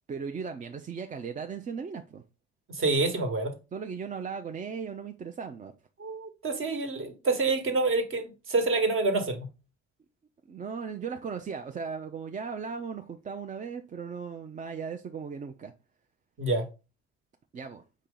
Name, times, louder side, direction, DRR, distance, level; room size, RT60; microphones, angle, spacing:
voice 1, 0.1-2.2 3.7-5.7 10.5-15.7 17.5-17.8, right 6 dB, 25° right, 0.4 m, -37 dB
voice 2, 2.7-3.5 6.0-9.5 16.4-16.6, right 3 dB, 40° right, 1.2 m, -27 dB
5.0 x 2.7 x 3.7 m
hypercardioid pair, 65°, 32 cm